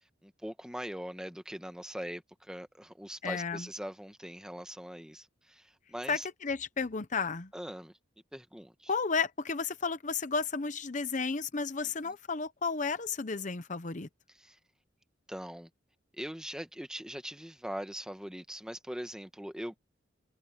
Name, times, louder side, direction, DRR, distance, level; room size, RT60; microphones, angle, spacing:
voice 1, 0.2-6.3 7.5-7.9 8.3-8.9 12.0-12.1 14.3-14.6 15.3-15.7 16.2-19.8, equal, 5° right, 1.3 m, -41 dB
voice 2, 3.2-3.7 6.1-7.5 8.9-14.1, left 4 dB, 40° left, 0.8 m, -33 dB
head